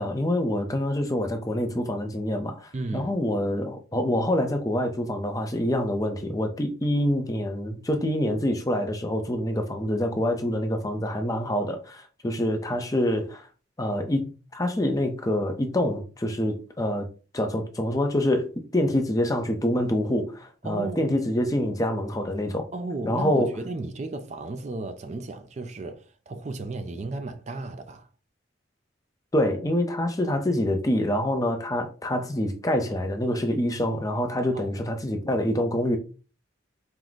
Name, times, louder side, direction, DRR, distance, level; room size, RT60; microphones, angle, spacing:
voice 1, 0.0-13.5 13.8-17.1 17.3-22.7 23.1-23.5 29.3-36.0, left 1 dB, 15° left, 0.5 m, -26 dB
voice 2, 2.7-3.1 20.6-21.1 22.7-28.1 34.5-34.8, right 2 dB, 35° right, 0.4 m, -34 dB
4.5 x 2.1 x 3.9 m
head